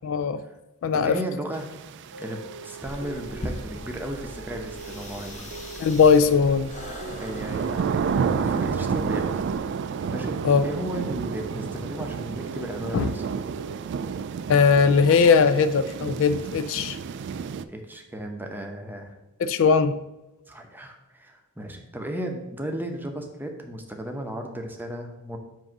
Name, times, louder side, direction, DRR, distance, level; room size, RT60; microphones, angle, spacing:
voice 1, 0.0-0.4 0.8-1.2 5.8-6.7 10.4-10.7 12.9-13.1 14.5-17.0 19.4-20.0, left 5 dB, 60° left, 12 dB, 0.3 m, -19 dB
voice 2, 0.9-1.7 2.2-5.5 7.2-9.4 10.1-10.4 10.6-13.3 17.7-19.2 20.5-25.4, right 1 dB, 10° right, 3 dB, 0.7 m, -35 dB
sound 1, 1.5-17.6, right 6 dB, 55° right, 0.3 m, -31 dB
sound 2, 2.1-13.8, right 3 dB, 70° right, 0.7 m, -43 dB
sound 3, 2.8-9.6, left 1 dB, 35° left, 0.8 m, -40 dB
7.6 x 2.7 x 5.9 m, 1.0 s
head